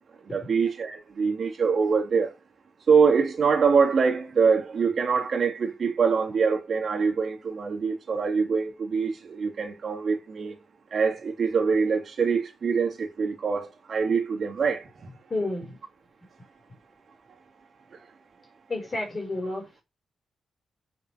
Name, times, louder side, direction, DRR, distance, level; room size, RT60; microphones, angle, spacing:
voice 1, 0.3-2.3 2.9-10.6 10.9-15.1 17.9-18.0, right 5 dB, 50° right, 2.6 m, -24 dB
voice 2, 15.3-15.8 18.7-19.8, left 2 dB, 25° left, 4.4 m, -30 dB
9.2 x 6.2 x 6.4 m
wide cardioid pair, 155°, 0 cm